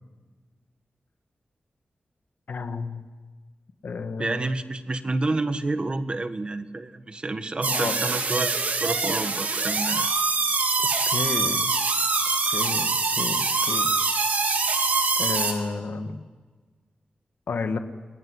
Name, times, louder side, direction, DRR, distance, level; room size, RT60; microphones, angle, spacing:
voice 1, 2.5-3.0 3.8-4.5 7.7-8.0 11.1-11.7 12.5-13.9 15.2-16.2 17.5-17.8, left 4 dB, 85° left, 7 dB, 1.9 m, -31 dB
voice 2, 4.2-10.1, right 2 dB, 35° right, 9 dB, 1.5 m, -29 dB
sound 1, 7.6-15.5, right 4 dB, 65° right, 3.5 m, -24 dB
28.5 x 21.5 x 9.9 m, 1.4 s
wide cardioid pair, 125°, 3 cm